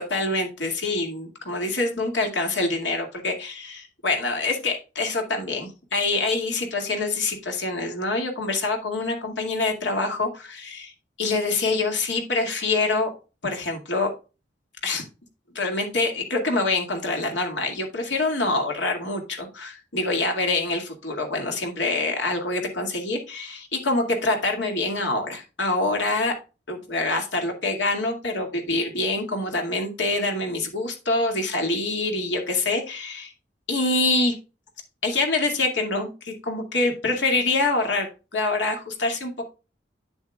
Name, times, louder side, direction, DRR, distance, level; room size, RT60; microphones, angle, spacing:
voice 1, 0.0-10.9 11.2-13.1 13.4-14.1 14.8-15.0 15.5-26.3 26.7-33.3 33.7-34.3 35.0-39.4, left 2 dB, 80° left, 2 dB, 2.3 m, -25 dB
8.9 x 8.0 x 2.4 m, 0.30 s
head